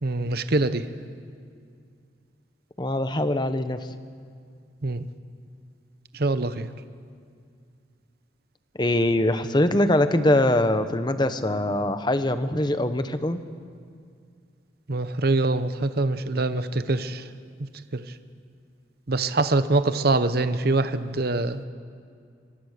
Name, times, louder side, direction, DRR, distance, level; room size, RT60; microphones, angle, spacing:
voice 1, 0.0-0.8 4.8-5.1 6.1-6.7 14.9-17.3 17.9-18.0 19.1-21.6, right 2 dB, 50° right, 11 dB, 0.9 m, -24 dB
voice 2, 2.8-3.8 8.8-13.4, left 1 dB, 20° left, 10 dB, 1.0 m, -22 dB
25.0 x 23.0 x 6.7 m, 2.2 s
head